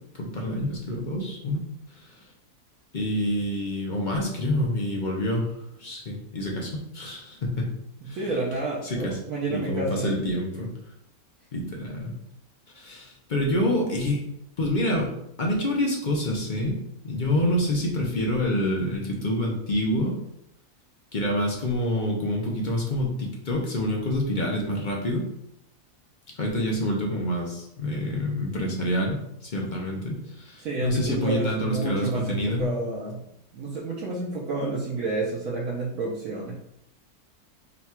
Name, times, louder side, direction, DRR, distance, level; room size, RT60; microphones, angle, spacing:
voice 1, 0.2-1.6 2.0-2.2 2.9-5.5 5.8-7.7 8.1-8.4 8.8-9.2 9.5-10.7 11.5-12.1 12.7-14.2 14.6-15.1 15.4-16.8 17.0-20.1 21.1-25.3 26.4-32.7, left 1 dB, 55° left, -1 dB, 0.5 m, -27 dB
voice 2, 8.0-10.1 13.4-13.6 30.6-33.2 33.5-36.6, right 3 dB, 65° right, -5 dB, 1.1 m, -30 dB
4.0 x 2.3 x 4.3 m, 0.79 s
omnidirectional pair, 1.6 m